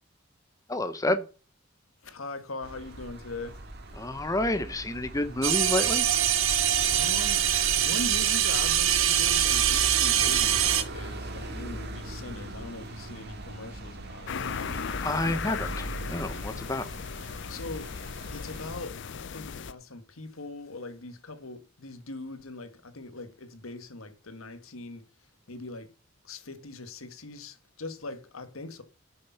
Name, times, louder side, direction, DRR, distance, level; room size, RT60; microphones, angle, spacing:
voice 1, 0.7-1.2 4.0-6.1 15.0-16.8, left 1 dB, 15° left, 0.8 m, -29 dB
voice 2, 2.0-3.6 6.9-7.4 7.7-14.8 17.5-17.9 18.3-25.0 25.5-25.9 26.2-28.8, left 2 dB, 85° left, 1.5 m, -41 dB
sound 1, 2.6-18.8, right 1 dB, 55° right, 1.9 m, -40 dB
sound 2, 5.4-10.8, right 10 dB, 85° right, 1.4 m, -24 dB
sound 3, 14.3-19.7, left 6 dB, 60° left, 0.5 m, -37 dB
11.5 x 6.6 x 5.6 m
head